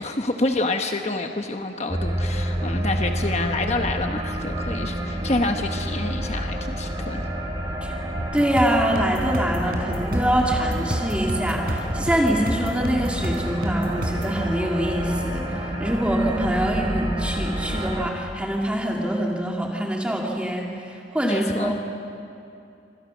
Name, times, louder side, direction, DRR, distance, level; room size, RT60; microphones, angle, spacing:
voice 1, 0.0-7.3 21.2-21.7, left 2 dB, 40° left, 4 dB, 1.1 m, -27 dB
sound 1, 1.9-18.1, right 1 dB, 25° right, 4.0 m, -29 dB
sound 2, 8.2-14.4, equal, 55° right, 4.4 m, -30 dB
voice 2, 8.3-21.8, right 1 dB, 5° right, -1 dB, 2.3 m, -24 dB
26.5 x 26.0 x 6.3 m, 2.7 s
head